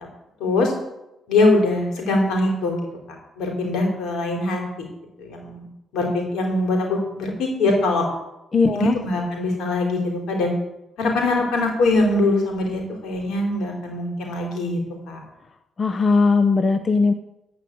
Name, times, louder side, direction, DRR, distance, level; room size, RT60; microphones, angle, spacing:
voice 1, 0.4-0.7 1.3-2.8 3.4-4.6 5.2-5.7 5.9-8.1 8.7-10.5 11.0-14.8 15.1-15.2, left 2 dB, 80° left, 1 dB, 3.7 m, -22 dB
voice 2, 8.5-9.0 15.8-17.1, left 4 dB, 35° left, 8 dB, 0.8 m, -18 dB
13.5 x 5.2 x 8.5 m, 0.91 s
cardioid pair, 90°, 0 cm